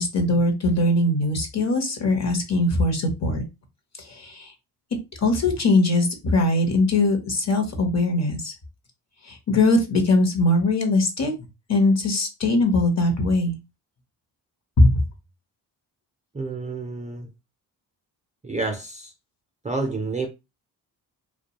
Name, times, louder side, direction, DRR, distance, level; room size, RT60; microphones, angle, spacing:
voice 1, 0.0-3.4 4.1-4.5 5.2-8.5 9.3-11.3 11.7-13.6 14.8-14.9, left 2 dB, 40° left, 0.8 m, -21 dB
voice 2, 16.3-17.3 18.4-19.1 19.6-20.3, right 3 dB, 15° right, 0.4 m, -29 dB
2.2 x 2.2 x 2.9 m
cardioid pair, 85°, 43 cm